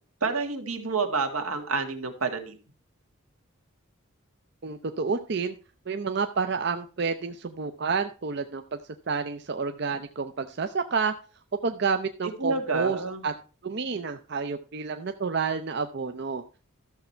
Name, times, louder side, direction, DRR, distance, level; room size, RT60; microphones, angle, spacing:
voice 1, 0.2-2.6 12.4-13.2, right 4 dB, 85° right, 5 dB, 1.8 m, -29 dB
voice 2, 4.6-5.5 5.9-8.6 9.1-11.1 11.6-13.0 13.2-13.3 13.6-16.4, right 5 dB, 50° right, 8 dB, 0.5 m, -29 dB
13.0 x 6.9 x 4.4 m, 0.36 s
head